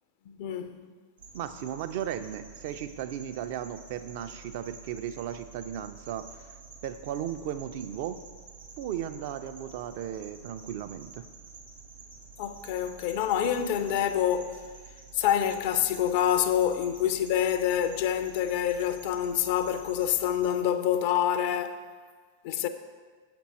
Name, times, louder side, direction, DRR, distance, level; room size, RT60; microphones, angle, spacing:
voice 1, 0.3-0.9 12.4-14.6 15.1-21.8 22.4-22.7, left 10 dB, 50° left, 0.4 m, -27 dB
sound 1, 1.2-20.5, right 5 dB, 70° right, 1.7 m, -49 dB
voice 2, 1.3-6.3 6.8-8.2 8.8-11.3, right 10 dB, 50° right, 0.4 m, -36 dB
7.1 x 6.0 x 4.2 m
figure-of-eight pair, 90°, 0 cm